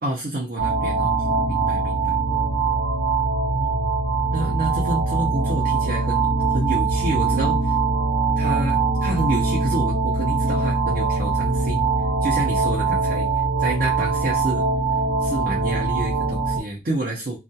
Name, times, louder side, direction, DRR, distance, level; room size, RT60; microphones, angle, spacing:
voice 1, 0.0-2.2 3.5-3.9 4.3-6.3 6.5-7.7 8.4-11.9 12.2-13.3 13.6-14.6 15.2-17.4, right 2 dB, 50° right, -4 dB, 0.6 m, -29 dB
sound 1, 0.6-16.6, right 4 dB, 90° right, 0.9 m, -22 dB
2.4 x 2.2 x 2.7 m, 0.26 s
head